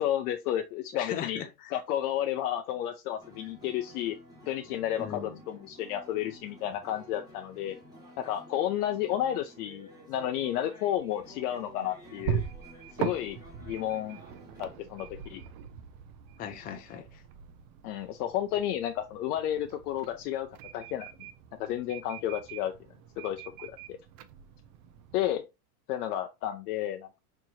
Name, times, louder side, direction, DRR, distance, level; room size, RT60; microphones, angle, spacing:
voice 1, 0.0-1.4 1.7-4.2 4.5-7.8 8.2-12.4 13.0-14.2 14.6-15.4 17.8-20.5 20.7-21.1 21.6-22.7 23.2-24.0 25.1-25.4 25.9-27.2, left 11 dB, 70° left, 0.6 m, -32 dB
voice 2, 0.9-1.8 5.0-5.4 16.4-17.2, left 9 dB, 20° left, 0.4 m, -38 dB
sound 1, 3.2-14.7, equal, 10° right, 1.3 m, -52 dB
sound 2, 11.0-25.4, right 8 dB, 55° right, 0.5 m, -41 dB
4.4 x 2.9 x 2.4 m
supercardioid pair, 115°, 46 cm